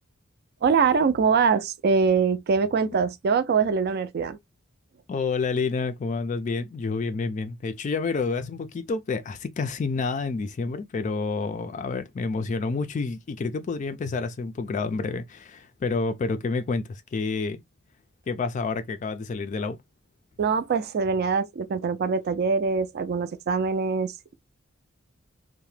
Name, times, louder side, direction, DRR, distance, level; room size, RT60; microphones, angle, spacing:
voice 1, 0.6-4.4 20.4-24.3, right 5 dB, 50° right, 0.4 m, -23 dB
voice 2, 5.1-17.6 18.3-19.8, left 4 dB, 40° left, 0.3 m, -29 dB
2.8 x 2.1 x 3.1 m
head